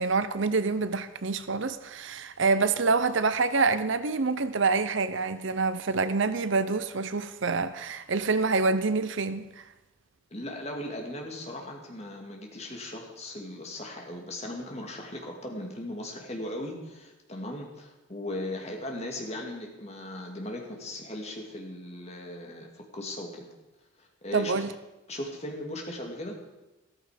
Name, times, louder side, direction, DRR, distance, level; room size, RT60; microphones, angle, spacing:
voice 1, 0.0-9.6 24.3-24.7, right 4 dB, 65° right, 0.7 m, -26 dB
voice 2, 10.3-23.5 24.0-24.5 25.1-26.4, left 1 dB, 30° left, 2.4 m, -38 dB
14.0 x 13.5 x 5.1 m
head